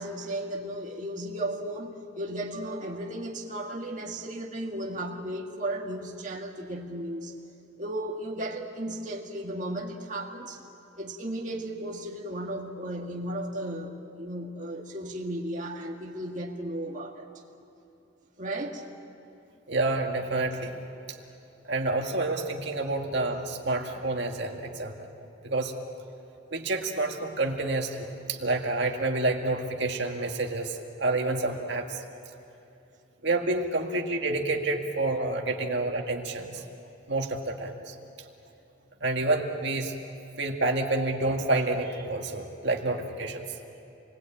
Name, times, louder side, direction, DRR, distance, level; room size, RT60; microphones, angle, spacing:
voice 1, 0.0-7.3 7.8-10.6 11.0-17.3 18.4-18.8 35.5-35.6, right 1 dB, 40° right, -2 dB, 1.9 m, -35 dB
voice 2, 19.7-20.8 21.7-24.9 25.4-25.7 26.5-32.0 33.2-36.6 37.1-37.9 39.0-39.9 40.4-43.4, right 2 dB, 55° right, 2 dB, 2.0 m, -28 dB
29.0 x 21.5 x 8.7 m, 2.8 s
head